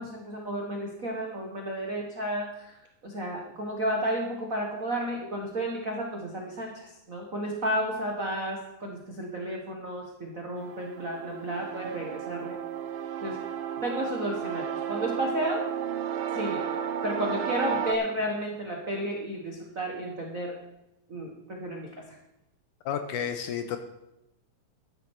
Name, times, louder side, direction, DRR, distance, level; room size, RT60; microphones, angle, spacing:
voice 1, 0.0-2.8 3.0-12.6 13.2-13.4 13.8-15.6 16.3-16.6 17.0-20.6 21.1-22.0, right 1 dB, 55° right, 0 dB, 0.9 m, -32 dB
sound 1, 10.6-17.9, right 8 dB, 75° right, 2.4 m, -33 dB
voice 2, 22.9-23.8, left 8 dB, 75° left, 8 dB, 2.1 m, -31 dB
13.5 x 11.0 x 4.6 m, 0.89 s
omnidirectional pair, 4.1 m